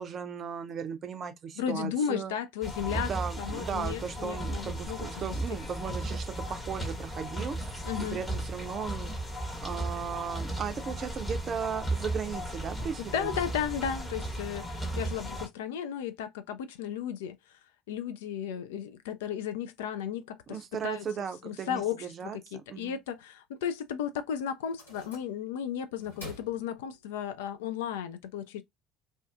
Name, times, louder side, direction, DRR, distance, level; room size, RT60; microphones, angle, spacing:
voice 1, 0.0-2.4 2.9-9.1 9.6-13.3 20.5-23.0, right 7 dB, 40° right, 0.5 m, -36 dB
voice 2, 1.6-3.1 3.4-5.3 7.8-8.2 13.1-17.4 17.9-20.6 20.8-21.0 21.4-28.6, left 8 dB, 65° left, 0.3 m, -34 dB
sound 1, 2.6-15.5, right 1 dB, 15° left, 1.0 m, -35 dB
sound 2, 24.6-25.6 26.0-27.3, left 1 dB, 80° left, 1.1 m, -48 dB
2.4 x 2.4 x 2.2 m
figure-of-eight pair, 60°, 0 cm